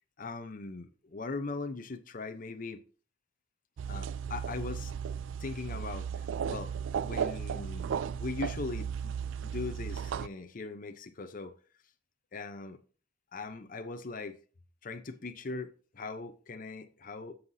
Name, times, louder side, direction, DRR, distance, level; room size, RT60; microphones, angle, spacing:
voice 1, 0.2-2.8 3.9-4.9 5.4-6.7 7.0-9.1 9.4-11.5 12.3-12.8 13.3-14.4 14.8-17.3, left 3 dB, 45° left, 0.7 m, -40 dB
sound 1, 3.8-10.3, right 7 dB, 75° right, 0.3 m, -35 dB
15.5 x 5.7 x 2.7 m
head